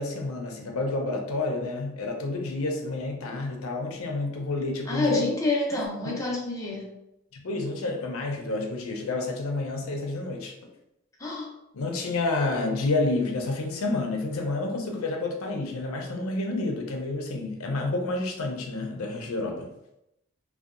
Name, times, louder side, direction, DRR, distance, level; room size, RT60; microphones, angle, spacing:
voice 1, 0.0-5.2 6.0-6.2 7.3-10.5 11.7-19.7, left 2 dB, 80° left, 2 dB, 0.5 m, -29 dB
voice 2, 4.9-6.9 11.2-11.5, left 2 dB, 15° left, -4 dB, 0.5 m, -28 dB
2.7 x 2.2 x 2.4 m, 0.86 s
head